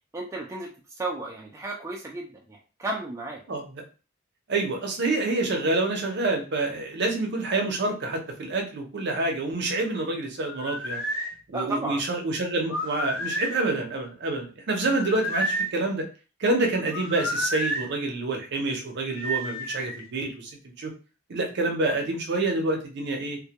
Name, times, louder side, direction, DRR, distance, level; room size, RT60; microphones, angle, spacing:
voice 1, 0.1-0.7 1.0-3.4 11.5-12.0, right 2 dB, 15° right, -1 dB, 0.3 m, -33 dB
voice 2, 4.5-11.0 11.5-16.0 16.4-20.5 20.8-20.9 21.3-23.4, right 2 dB, 60° right, 2 dB, 0.6 m, -27 dB
sound 1, 10.5-11.3 12.6-13.6 14.9-15.7 16.9-17.8 19.2-20.0, equal, 85° left, 0.6 m, -30 dB
2.1 x 2.1 x 2.8 m, 0.35 s
head